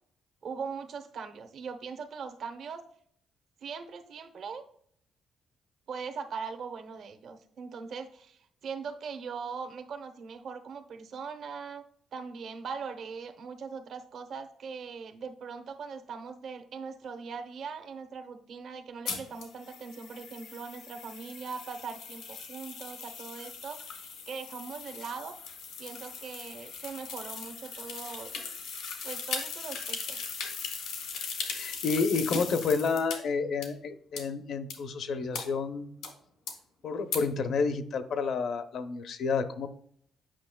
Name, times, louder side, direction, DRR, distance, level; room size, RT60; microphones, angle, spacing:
voice 1, 0.4-2.8 3.6-4.6 5.9-11.8 12.1-25.3 25.8-28.3 29.0-30.2, right 5 dB, 65° right, 8 dB, 0.8 m, -40 dB
sound 1, 19.1-33.2 33.6-33.7 34.2-34.3 34.7-34.8 35.3-35.4 36.0-36.1 36.5-36.6 37.1-37.2, left 5 dB, 85° left, 1.7 m, -39 dB
voice 2, 31.5-35.9 36.8-39.7, left 4 dB, 65° left, 9 dB, 0.7 m, -30 dB
8.7 x 5.5 x 2.2 m, 0.63 s
cardioid pair, 90°, 0 cm